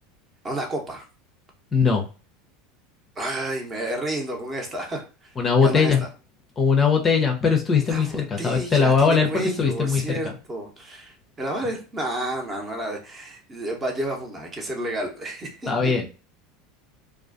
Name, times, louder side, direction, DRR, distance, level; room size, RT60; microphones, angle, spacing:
voice 1, 0.4-1.1 3.2-5.3 5.6-6.1 7.8-16.1, right 1 dB, 25° right, 2 dB, 0.8 m, -31 dB
voice 2, 1.7-2.0 5.4-6.0 6.6-10.2 15.7-16.1, left 5 dB, 25° left, 3 dB, 0.5 m, -20 dB
2.3 x 2.3 x 2.4 m, 0.33 s
hypercardioid pair, 80°, 0 cm